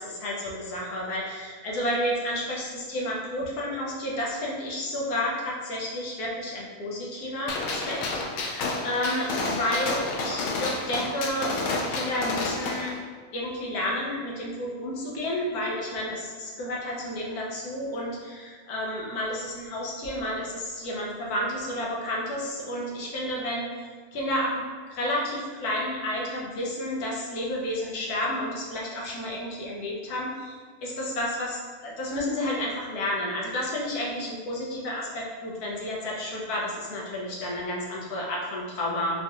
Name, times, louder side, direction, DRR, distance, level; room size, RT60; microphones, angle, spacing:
voice 1, 0.0-8.0 8.3-12.9 13.3-30.6 30.8-39.2, left 1 dB, 85° left, -3 dB, 1.3 m, -31 dB
Gunshot gunfire, 7.5-12.9, left 3 dB, 70° left, 0.9 m, -30 dB
4.2 x 2.4 x 2.9 m, 1.5 s
omnidirectional pair, 1.6 m